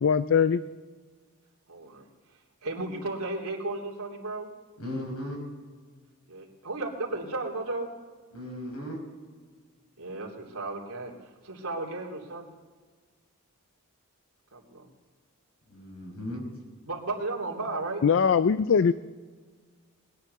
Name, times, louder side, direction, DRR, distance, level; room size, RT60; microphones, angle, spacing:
voice 1, 0.0-0.6 18.0-18.9, left 6 dB, 55° left, 14 dB, 0.4 m, -21 dB
voice 2, 1.7-2.0 2.6-4.5 6.3-7.9 10.0-11.1 11.4-12.5 14.5-14.9 16.8-18.0, right 2 dB, 80° right, 0 dB, 3.1 m, -34 dB
voice 3, 4.8-5.4 8.3-9.0 15.7-16.4, left 1 dB, 90° left, 2 dB, 5.6 m, -36 dB
20.5 x 10.5 x 6.7 m, 1.5 s
head